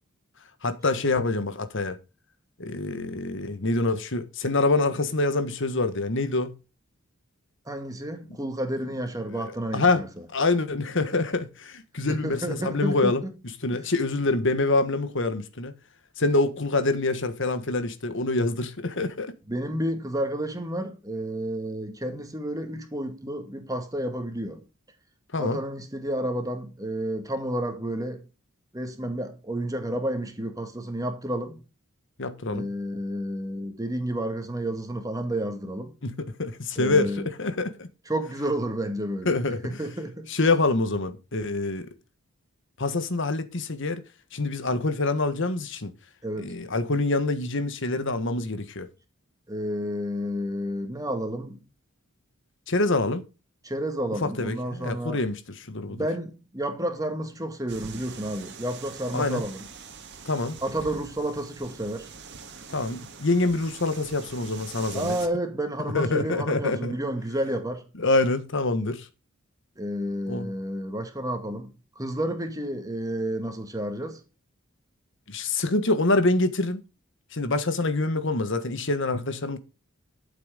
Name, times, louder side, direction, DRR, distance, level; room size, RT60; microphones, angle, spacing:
voice 1, 0.6-2.0 2.6-6.5 9.4-10.0 10.3-13.2 13.6-15.7 16.2-19.3 25.3-25.6 32.2-32.7 36.0-37.9 39.2-39.8 40.3-41.9 42.8-44.0 44.3-45.9 46.4-48.9 52.7-53.2 54.2-56.1 59.1-59.4 60.2-60.6 62.7-65.1 65.8-66.9 68.0-69.1 70.3-70.5 75.3-76.8 77.3-79.6, left 2 dB, 60° left, 1.4 m, -26 dB
voice 2, 7.7-10.1 12.1-13.2 13.7-13.9 19.5-24.6 25.4-28.2 28.7-31.6 32.5-35.9 36.8-37.3 38.1-39.3 39.6-40.3 46.2-46.6 49.5-51.6 53.6-55.2 55.8-59.7 60.6-62.1 64.9-67.9 69.8-74.2, right 1 dB, 15° right, 2.1 m, -31 dB
sound 1, 57.7-65.3, right 5 dB, 55° right, 2.0 m, -44 dB
13.0 x 7.8 x 5.1 m
head